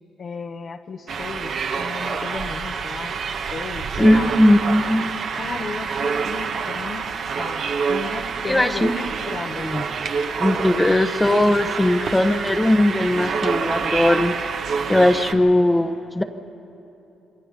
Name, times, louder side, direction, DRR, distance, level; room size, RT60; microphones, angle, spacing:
voice 1, 0.2-4.3 5.3-7.1 7.4-8.8 9.3-9.7, left 5 dB, 50° left, 4 dB, 1.0 m, -34 dB
sound 1, 1.1-15.3, right 5 dB, 65° right, 1.2 m, -27 dB
voice 2, 4.0-5.1 8.4-9.1 9.6-9.8 10.4-14.3 14.9-16.2, left 1 dB, 10° left, 8 dB, 1.0 m, -18 dB
27.5 x 22.5 x 5.2 m, 2.9 s
cardioid pair, 90°, 0 cm